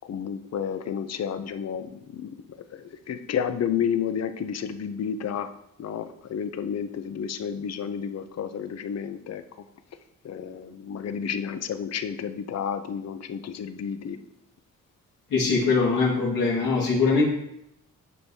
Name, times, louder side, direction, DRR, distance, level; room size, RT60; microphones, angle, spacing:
voice 1, 0.0-2.3 2.7-5.5 5.8-9.4 10.2-14.2, left 8 dB, 50° left, 10 dB, 0.6 m, -31 dB
voice 2, 15.3-17.2, left 4 dB, 75° left, -4 dB, 1.9 m, -22 dB
10.0 x 6.2 x 2.8 m, 0.80 s
cardioid pair, 125°, 33 cm